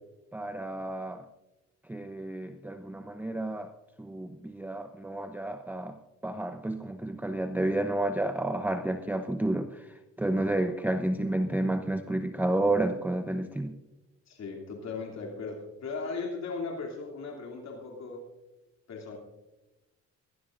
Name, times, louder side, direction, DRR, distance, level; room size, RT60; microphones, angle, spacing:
voice 1, 0.3-1.2 1.9-3.7 4.0-6.0 6.2-13.7, right 1 dB, 5° right, 7 dB, 0.7 m, -31 dB
voice 2, 14.3-18.2 18.9-19.2, left 4 dB, 60° left, 1 dB, 2.7 m, -37 dB
19.0 x 18.0 x 2.5 m, 1.0 s
cardioid pair, 90°, 30 cm